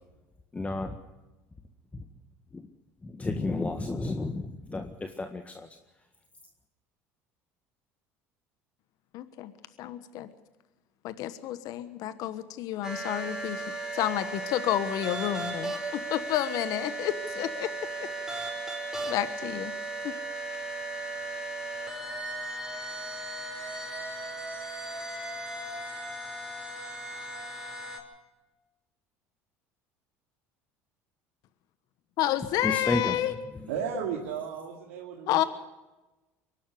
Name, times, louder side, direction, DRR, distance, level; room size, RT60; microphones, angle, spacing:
voice 1, 0.5-1.0 2.5-2.6 3.0-5.7 32.6-33.2, left 2 dB, 20° left, 6 dB, 1.7 m, -31 dB
voice 2, 9.1-9.5 9.8-10.3 11.0-13.6 13.9-17.7 18.0-18.4 19.1-19.7 20.0-20.1 32.2-33.3 35.3-35.4, left 13 dB, 65° left, 12 dB, 1.2 m, -30 dB
sound 1, 12.8-28.0, right 2 dB, 10° right, 5.6 m, -36 dB
voice 3, 33.7-35.5, right 8 dB, 85° right, 0 dB, 2.4 m, -34 dB
23.0 x 12.0 x 9.5 m, 1.1 s
hypercardioid pair, 80°, 7 cm